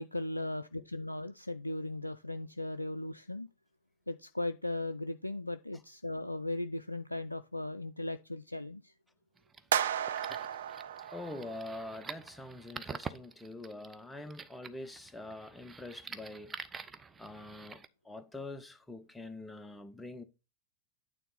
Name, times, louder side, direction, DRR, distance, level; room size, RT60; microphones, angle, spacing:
voice 1, 0.0-3.5 4.1-8.9, left 1 dB, 85° left, 0.3 m, -37 dB
sound 1, 9.4-17.9, right 5 dB, 15° right, 0.6 m, -47 dB
sound 2, 9.7-11.9, right 9 dB, 60° right, 0.5 m, -34 dB
voice 2, 11.1-16.6 17.2-20.2, left 2 dB, 5° left, 0.9 m, -45 dB
9.2 x 3.7 x 5.6 m
figure-of-eight pair, 90°, 0 cm